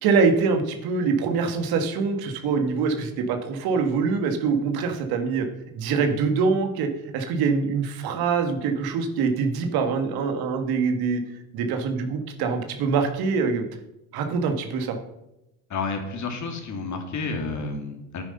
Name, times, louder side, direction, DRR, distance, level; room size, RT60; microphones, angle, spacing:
voice 1, 0.0-5.5 5.7-6.9 7.1-11.2 11.5-13.6 14.1-15.0, right 5 dB, 75° right, 6 dB, 1.8 m, -24 dB
voice 2, 15.7-18.2, left 4 dB, 50° left, 4 dB, 2.8 m, -30 dB
9.6 x 9.3 x 5.5 m, 0.88 s
supercardioid pair, 80°, 37 cm